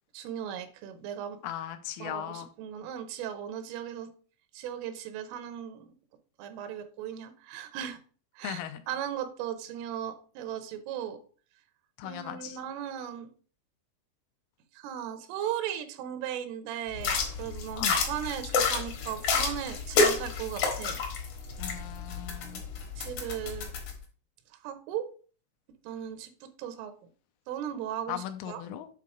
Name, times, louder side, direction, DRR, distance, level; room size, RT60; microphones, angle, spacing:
voice 1, 0.1-1.4 2.0-4.1 4.5-5.9 6.4-8.0 8.4-11.2 12.0-13.3 14.7-21.0 23.0-23.7 24.6-25.1 25.8-26.9 27.5-28.6, right 10 dB, 80° right, 3.3 m, -37 dB
voice 2, 1.4-2.5 8.4-8.8 12.0-12.6 17.8-18.0 21.6-22.6 28.1-28.9, left 11 dB, 85° left, 3.1 m, -38 dB
sound 1, 16.9-23.9, left 4 dB, 70° left, 1.8 m, -29 dB
8.5 x 3.8 x 4.9 m
omnidirectional pair, 5.8 m